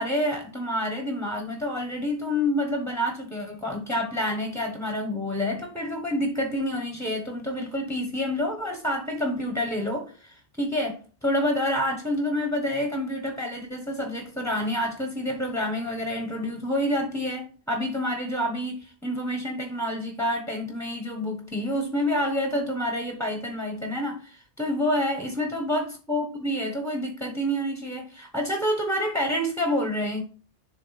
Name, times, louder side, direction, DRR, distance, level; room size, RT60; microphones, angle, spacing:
voice 1, 0.0-30.2, left 1 dB, 5° left, 1.0 m, -28 dB
10.5 x 3.6 x 4.1 m
omnidirectional pair, 1.2 m